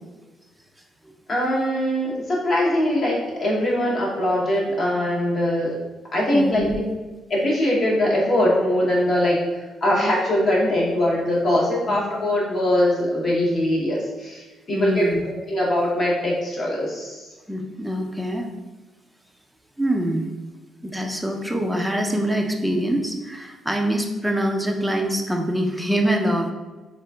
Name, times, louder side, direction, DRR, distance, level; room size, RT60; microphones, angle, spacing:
voice 1, 1.3-5.8 6.1-6.7 7.3-17.3, left 1 dB, 50° left, -4 dB, 0.7 m, -22 dB
voice 2, 6.3-6.8 11.9-12.0 14.7-15.2 17.5-18.5 19.8-20.3 20.8-26.5, right 1 dB, 5° right, 2 dB, 0.4 m, -24 dB
3.6 x 2.4 x 2.2 m, 1.2 s
cardioid pair, 90°, 0 cm